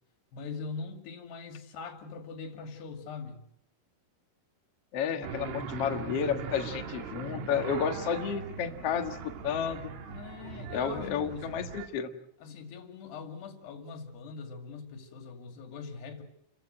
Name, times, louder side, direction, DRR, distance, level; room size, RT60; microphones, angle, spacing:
voice 1, 0.3-3.4 10.0-11.6 12.4-16.2, left 5 dB, 65° left, 4.3 m, -42 dB
voice 2, 4.9-9.9 10.7-12.1, left 7 dB, 80° left, 1.3 m, -31 dB
sound 1, 5.2-11.9, right 6 dB, 80° right, 4.2 m, -40 dB
29.5 x 15.0 x 7.8 m
omnidirectional pair, 5.4 m